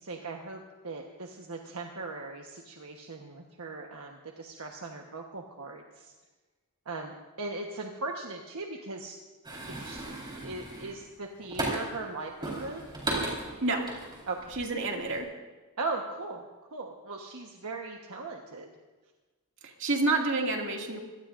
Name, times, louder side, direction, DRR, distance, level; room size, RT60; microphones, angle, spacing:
voice 1, 0.0-6.1 6.8-9.2 9.7-12.8 14.2-14.6 15.8-16.4 16.7-18.7, right 3 dB, 75° right, 1 dB, 1.3 m, -39 dB
sound 1, 9.4-12.0 12.4-14.6 14.9-15.2, right 2 dB, 20° right, 4.2 m, -36 dB
voice 2, 14.5-15.3 19.6-21.0, right 3 dB, 55° right, 0 dB, 2.4 m, -28 dB
25.5 x 18.0 x 2.6 m, 1.3 s
head